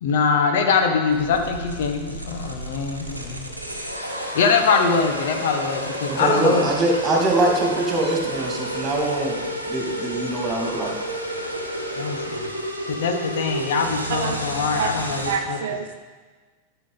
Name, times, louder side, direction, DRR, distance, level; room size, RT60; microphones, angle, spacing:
voice 1, 0.0-3.5 4.1-6.7 12.0-12.5 12.9-15.6, left 5 dB, 55° left, 5 dB, 1.0 m, -23 dB
sound 1, 1.1-15.4, equal, 90° right, 1.0 m, -31 dB
voice 2, 6.1-10.9, right 2 dB, 20° right, -1 dB, 2.1 m, -23 dB
voice 3, 14.1-14.5 14.8-14.9 15.2-16.0, right 7 dB, 60° right, 5 dB, 0.7 m, -27 dB
13.0 x 5.9 x 3.9 m, 1.4 s
figure-of-eight pair, 90°, 0 cm